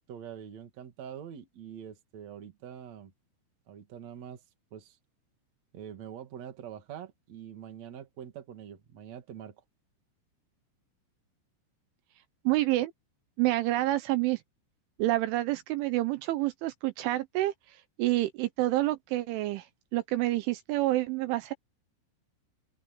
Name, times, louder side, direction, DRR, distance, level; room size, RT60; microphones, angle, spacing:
voice 1, 0.0-3.1 3.7-4.4 4.7-5.0 5.7-9.6, right 9 dB, 45° right, 2.6 m, -44 dB
voice 2, 12.5-12.9 13.4-14.4 15.0-19.7 19.9-21.5, right 17 dB, 80° right, 3.2 m, -28 dB
open air
omnidirectional pair, 5.8 m